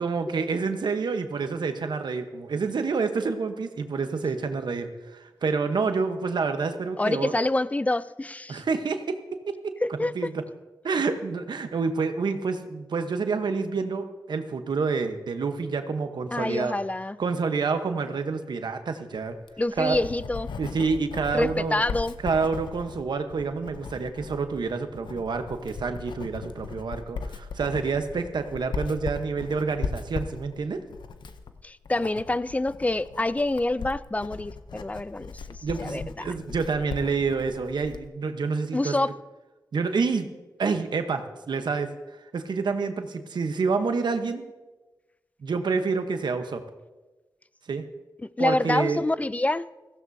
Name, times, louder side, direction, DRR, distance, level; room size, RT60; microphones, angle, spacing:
voice 1, 0.0-7.3 8.5-9.8 10.1-10.4 10.8-16.8 17.2-19.3 19.8-20.0 20.6-21.8 22.2-30.8 35.6-39.0 39.7-40.3 40.6-41.9 42.3-44.5 45.4-46.6 47.7-47.8 48.4-49.0, right 4 dB, 75° right, 1.0 m, -28 dB
voice 2, 7.0-8.6 9.8-10.1 16.3-17.2 19.6-20.5 21.3-22.1 31.6-35.4 35.8-36.3 38.7-39.1 48.4-49.7, left 2 dB, 20° left, 0.4 m, -26 dB
Writing, 19.3-38.1, left 5 dB, 90° left, 0.7 m, -38 dB
16.0 x 15.5 x 2.7 m
cardioid pair, 60°, 8 cm